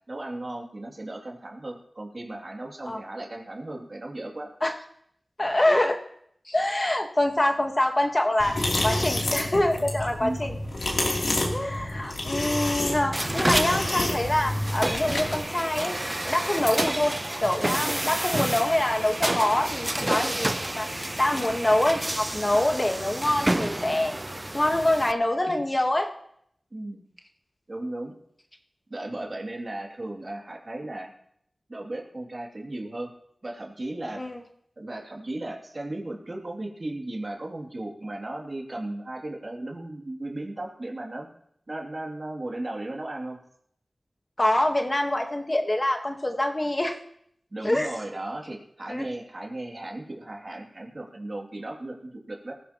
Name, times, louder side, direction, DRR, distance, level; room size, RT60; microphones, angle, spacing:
voice 1, 0.1-4.5 5.9-6.0 10.2-10.4 25.5-25.6 26.7-27.0 27.7-28.1 28.9-31.1 31.7-33.1 33.4-34.2 34.8-41.3 41.7-43.4 47.5-52.5, right 1 dB, 45° right, 0 dB, 2.6 m, -36 dB
voice 2, 5.4-6.0 6.5-10.5 11.5-15.9 16.3-17.1 17.4-24.1 24.5-26.1 34.2-34.4 44.4-47.0 47.6-47.9 48.9-49.1, left 1 dB, 30° left, 4 dB, 1.4 m, -25 dB
sound 1, 8.4-15.4, left 1 dB, 85° left, 3.1 m, -29 dB
sound 2, 13.1-25.1, right 1 dB, 20° right, 0.4 m, -29 dB
19.0 x 15.5 x 3.0 m, 0.69 s
wide cardioid pair, 80°, 0 cm